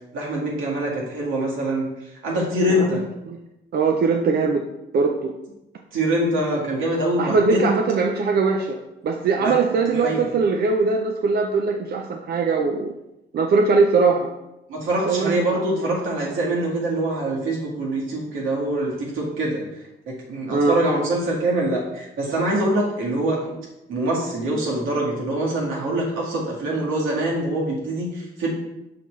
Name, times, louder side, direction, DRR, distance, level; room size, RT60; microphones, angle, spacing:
voice 1, 0.1-1.9 2.2-3.0 5.9-7.7 9.4-9.6 10.0-10.3 14.7-19.6 20.3-23.5 23.9-28.5, right 1 dB, 85° right, -3 dB, 2.0 m, -24 dB
voice 2, 2.7-3.0 3.3-3.4 3.7-4.7 4.9-5.3 7.2-8.8 9.0-12.9 13.3-14.3 15.1-15.9 20.5-20.8, right 4 dB, 55° right, 2 dB, 0.6 m, -21 dB
5.6 x 5.6 x 3.2 m, 0.93 s
cardioid pair, 90°, 20 cm